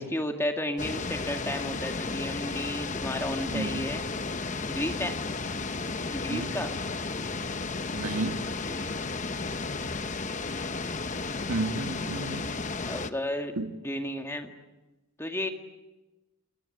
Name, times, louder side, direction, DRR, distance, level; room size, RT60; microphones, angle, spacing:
voice 1, 0.0-4.1 4.7-5.1 6.1-6.7 8.7-8.9 12.9-13.5 13.8-14.5 15.2-15.5, left 1 dB, 10° left, 2.0 m, -32 dB
sound 1, 0.8-13.1, left 3 dB, 35° left, 0.9 m, -33 dB
voice 2, 3.5-3.9 6.3-6.6 7.9-8.5 11.5-12.5 13.6-13.7, right 3 dB, 90° right, 1.6 m, -32 dB
28.5 x 18.5 x 9.8 m
head